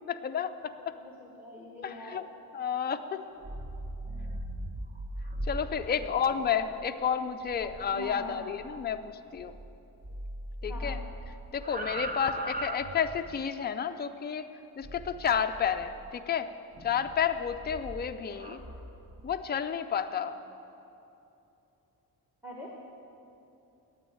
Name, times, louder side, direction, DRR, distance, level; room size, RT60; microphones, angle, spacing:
voice 1, 0.1-0.9 1.8-2.2 2.5-3.2 5.5-9.5 10.6-11.0 11.5-14.5 14.8-16.5 16.8-18.6 19.2-20.4, left 7 dB, 25° left, 7 dB, 0.4 m, -31 dB
voice 2, 0.8-2.3 5.9-6.5 7.9-8.4 10.6-11.0 18.4-18.6 22.4-22.7, equal, 5° right, -2 dB, 1.1 m, -45 dB
sound 1, 3.3-9.8 10.0-13.4 14.8-16.1 16.7-19.4, right 1 dB, 25° right, 0.7 m, -40 dB
9.4 x 8.9 x 9.1 m, 2.8 s
wide cardioid pair, 170°, 37 cm